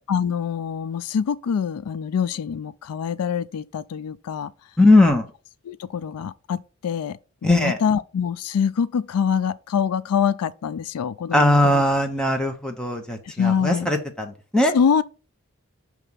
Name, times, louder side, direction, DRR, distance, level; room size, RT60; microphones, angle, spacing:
voice 1, 0.1-4.5 5.6-11.8 13.4-13.9 14.7-15.0, left 7 dB, 85° left, 0.3 m, -25 dB
voice 2, 4.8-5.3 7.4-7.8 11.3-14.7, left 1 dB, 5° left, 0.8 m, -19 dB
6.0 x 3.3 x 5.4 m
head